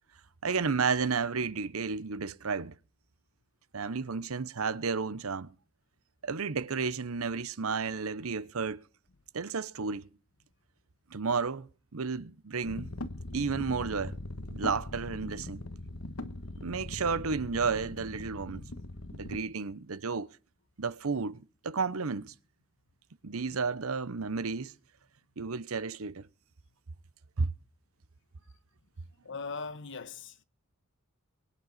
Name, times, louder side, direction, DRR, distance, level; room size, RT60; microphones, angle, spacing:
voice 1, 0.4-2.8 3.7-5.5 6.2-8.8 9.3-10.1 11.1-12.9 13.3-14.2 14.5-15.6 16.6-18.6 19.2-20.3 20.8-22.3 23.2-24.7 25.4-26.3 27.4-27.5, right 5 dB, 75° right, 0.8 m, -32 dB
sound 1, 12.6-19.4, left 1 dB, 90° left, 1.4 m, -41 dB
voice 2, 29.2-30.4, left 4 dB, 60° left, 1.2 m, -39 dB
23.0 x 9.3 x 4.1 m
head